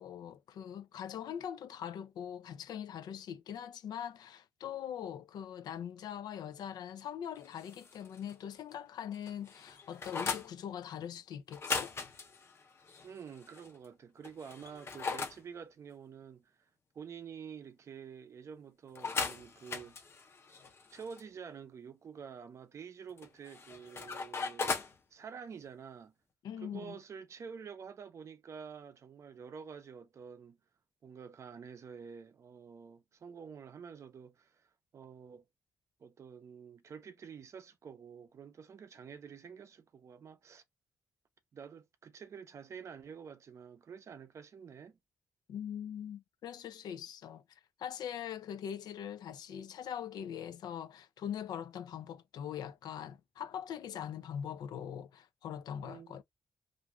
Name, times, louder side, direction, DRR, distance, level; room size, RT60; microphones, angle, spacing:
voice 1, 0.0-11.9 26.4-27.0 45.5-47.4 47.8-56.2, left 9 dB, 80° left, 0.4 m, -42 dB
sound 1, 7.4-8.4 8.7-8.8 9.1-10.5 11.5-13.7 14.2-15.4 18.9-21.2 23.2-25.0, left 4 dB, 40° left, 0.6 m, -39 dB
voice 2, 13.0-16.5 16.9-20.1 20.9-26.1 26.6-30.6 31.0-35.4 36.0-40.6 41.5-45.0 55.8-56.2, right 6 dB, 45° right, 0.5 m, -49 dB
2.5 x 2.3 x 2.9 m
wide cardioid pair, 140°, 7 cm